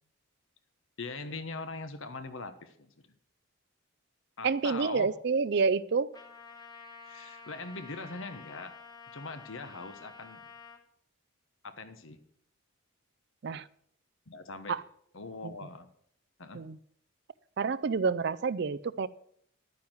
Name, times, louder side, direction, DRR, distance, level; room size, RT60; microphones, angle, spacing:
voice 1, 1.0-2.9 4.4-5.1 7.0-8.8 9.1-10.4 11.6-12.2 14.3-14.8 15.1-15.9 16.4-16.6, left 3 dB, 65° left, 11 dB, 1.1 m, -41 dB
voice 2, 4.4-6.1 13.4-13.7 14.7-14.8 15.4-15.5 16.5-16.8 17.6-19.1, right 5 dB, 50° right, 19 dB, 0.4 m, -28 dB
Trumpet, 6.1-10.8, left 5 dB, 20° left, 1.5 m, -50 dB
11.0 x 9.5 x 6.2 m, 0.67 s
head